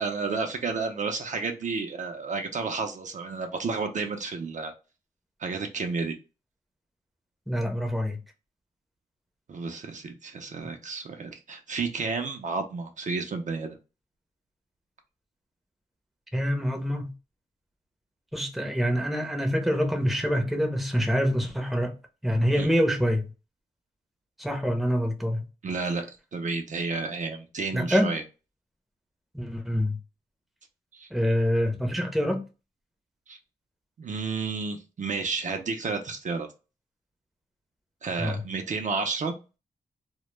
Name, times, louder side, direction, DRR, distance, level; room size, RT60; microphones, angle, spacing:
voice 1, 0.0-4.7 5.4-6.1 9.5-13.8 22.6-22.7 25.6-28.2 30.9-31.1 33.3-33.4 34.0-36.5 38.0-39.3, right 4 dB, 45° right, 0.4 m, -31 dB
voice 2, 7.5-8.2 16.3-17.1 18.3-22.0 22.2-23.3 24.4-25.4 27.7-28.1 29.3-30.0 31.1-32.4 38.2-38.4, equal, ahead, 0.6 m, -25 dB
2.1 x 2.0 x 3.0 m
cardioid pair, 80°, 17 cm